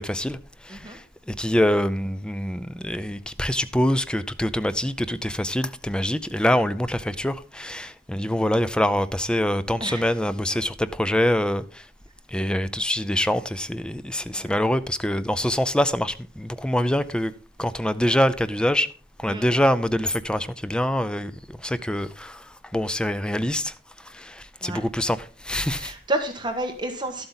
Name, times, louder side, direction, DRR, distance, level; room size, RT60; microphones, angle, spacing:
voice 1, 0.0-11.9 12.3-17.3 17.6-18.9 19.2-25.9, left 1 dB, 5° left, 0.4 m, -25 dB
voice 2, 25.7-27.3, right 2 dB, 25° right, 1.5 m, -30 dB
12.0 x 7.8 x 4.0 m
head